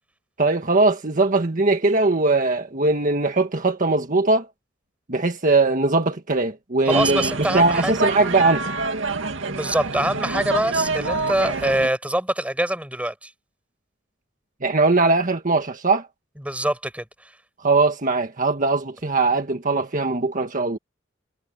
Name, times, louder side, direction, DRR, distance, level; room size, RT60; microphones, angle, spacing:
voice 1, 0.4-4.5 5.1-8.7 14.6-16.1 17.6-20.8, right 3 dB, 45° right, 1.6 m, -20 dB
voice 2, 6.9-7.9 9.4-13.3 16.4-17.3, right 1 dB, 5° right, 6.0 m, -24 dB
sound 1, 6.9-11.9, right 3 dB, 85° right, 2.2 m, -26 dB
head